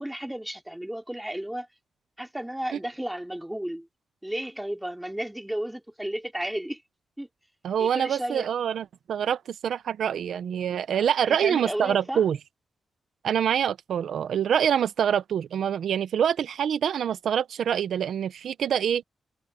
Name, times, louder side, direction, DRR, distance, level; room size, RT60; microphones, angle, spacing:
voice 1, 0.0-1.7 2.2-3.9 4.2-6.8 7.2-7.3 7.8-8.5 10.9-12.2, right 1 dB, 5° right, 2.7 m, -33 dB
voice 2, 7.6-12.4 13.2-19.0, right 8 dB, 75° right, 0.7 m, -25 dB
wide cardioid pair, 140°, 0 cm